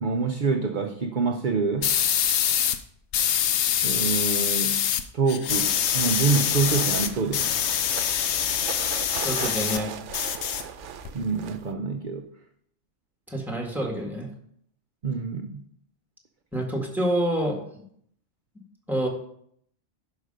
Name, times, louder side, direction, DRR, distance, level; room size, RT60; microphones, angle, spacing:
voice 1, 0.0-1.9 3.8-4.8 5.1-7.6 11.1-12.3 15.0-15.6, right 4 dB, 50° right, 6 dB, 0.8 m, -26 dB
sound 1, 1.8-2.8 3.1-5.0 5.3-9.8 10.1-11.1, left 9 dB, 70° left, 0.9 m, -25 dB
sound 2, 6.0-11.7, right 8 dB, 75° right, 1.0 m, -38 dB
voice 2, 9.1-9.9 13.3-14.3 16.5-17.8 18.9-19.1, right 1 dB, ahead, 1 dB, 1.8 m, -27 dB
11.0 x 5.1 x 5.3 m, 0.66 s
omnidirectional pair, 1.2 m